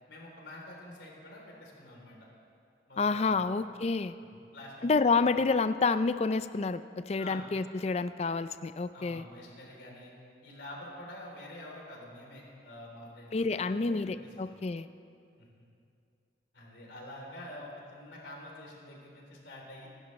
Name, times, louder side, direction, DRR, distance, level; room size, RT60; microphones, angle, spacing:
voice 1, 0.1-2.2 2.9-3.4 4.5-4.7 5.1-5.3 7.2-7.5 8.9-10.1 10.4-14.1 14.4-14.6 15.4-15.7 16.5-19.9, left 1 dB, 70° left, -2 dB, 3.4 m, -47 dB
voice 2, 3.0-4.1 4.8-9.2 13.3-14.9, left 4 dB, 35° left, 13 dB, 0.4 m, -29 dB
24.5 x 12.0 x 3.2 m, 2.5 s
head